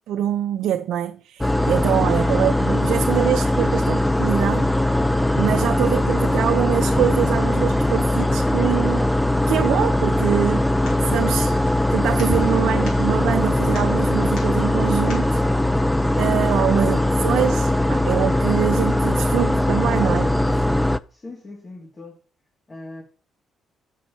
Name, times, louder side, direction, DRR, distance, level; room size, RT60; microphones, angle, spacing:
voice 1, 0.1-4.7 5.4-9.1 9.5-10.7 11.0-11.6 11.9-15.4 16.2-20.6, right 11 dB, 80° right, 0.7 m, -24 dB
sound 1, 1.4-21.0, left 1 dB, 5° left, 0.5 m, -20 dB
sound 2, 10.4-15.4, left 3 dB, 80° left, 5.5 m, -43 dB
voice 2, 21.1-22.2 22.7-23.0, left 2 dB, 30° left, 2.6 m, -40 dB
6.9 x 6.4 x 7.4 m
cardioid pair, 90°, 0 cm